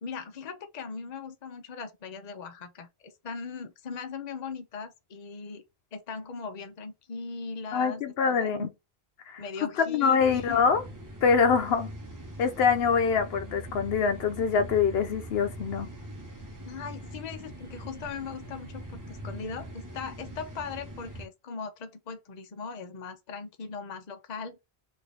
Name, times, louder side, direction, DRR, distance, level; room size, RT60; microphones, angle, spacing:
voice 1, 0.0-5.6 5.9-8.7 9.4-10.6 16.6-24.6, left 5 dB, 45° left, 0.7 m, -39 dB
voice 2, 7.7-8.7 9.3-9.4 9.8-10.8 11.2-11.9 12.4-15.9, left 6 dB, 75° left, 0.9 m, -24 dB
sound 1, 10.2-21.3, right 1 dB, 20° right, 0.7 m, -42 dB
3.8 x 2.5 x 3.3 m
omnidirectional pair, 1.1 m